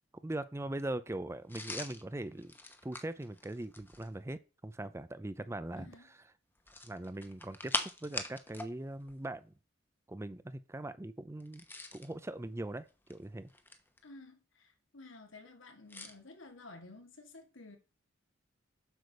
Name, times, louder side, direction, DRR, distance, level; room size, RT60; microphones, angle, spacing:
voice 1, 0.2-2.5 2.8-6.2 6.8-9.5 10.1-11.6 11.9-13.5, right 1 dB, 15° right, 0.5 m, -41 dB
sound 1, 1.5-4.2 6.6-8.7 9.0-9.2 11.4-12.1 12.9-14.0 15.9-16.2, left 2 dB, 10° left, 1.0 m, -42 dB
voice 2, 5.8-6.1 14.0-17.8, left 2 dB, 80° left, 2.2 m, -53 dB
7.9 x 4.9 x 6.5 m
head